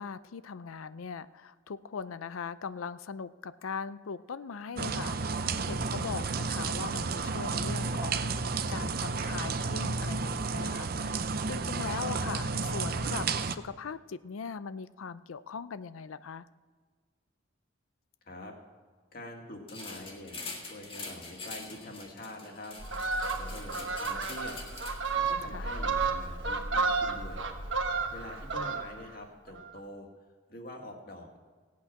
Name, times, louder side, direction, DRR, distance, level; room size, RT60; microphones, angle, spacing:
voice 1, 0.0-5.2 5.7-11.2 11.5-16.4 25.5-25.7, left 5 dB, 90° left, 15 dB, 0.5 m, -40 dB
sound 1, 4.8-13.6, right 4 dB, 45° right, 0.6 m, -32 dB
voice 2, 19.1-22.8 23.3-24.6 24.9-27.4 28.1-30.1 30.5-31.4, left 1 dB, 45° left, 2 dB, 2.1 m, -45 dB
sound 2, 19.7-25.3, left 3 dB, 25° left, 1.7 m, -44 dB
Fowl, 22.8-29.1 29.5-29.7, right 4 dB, 65° right, 1.3 m, -32 dB
17.5 x 8.5 x 5.9 m, 1.5 s
head